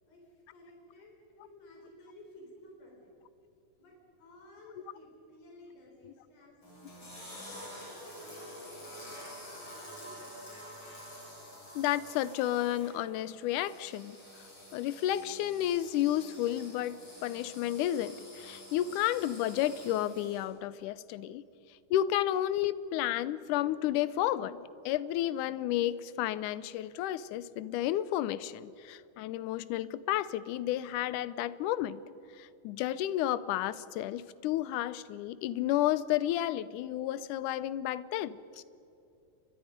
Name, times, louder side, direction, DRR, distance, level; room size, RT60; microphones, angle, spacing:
voice 1, 0.1-3.2 3.8-7.4 7.8-9.2 9.5-10.6, left 1 dB, 55° left, -1 dB, 5.3 m, -55 dB
sound 1, 6.6-20.4, equal, 35° left, 8.8 m, -48 dB
voice 2, 11.8-14.2 14.7-21.4 21.9-32.0 32.4-38.4, left 13 dB, 80° left, 17 dB, 2.1 m, -31 dB
29.5 x 23.5 x 5.2 m, 2.8 s
omnidirectional pair, 3.8 m